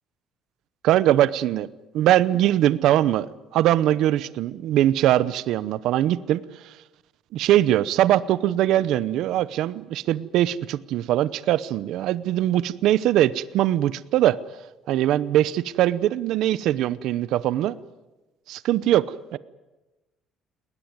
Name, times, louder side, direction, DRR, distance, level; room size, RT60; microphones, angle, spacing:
voice 1, 0.8-1.7 1.9-6.7 7.3-14.4 14.9-17.7 18.5-19.4, right 13 dB, 65° right, 18 dB, 0.7 m, -21 dB
20.5 x 19.5 x 9.6 m, 1.1 s
cardioid pair, 165°, 0 cm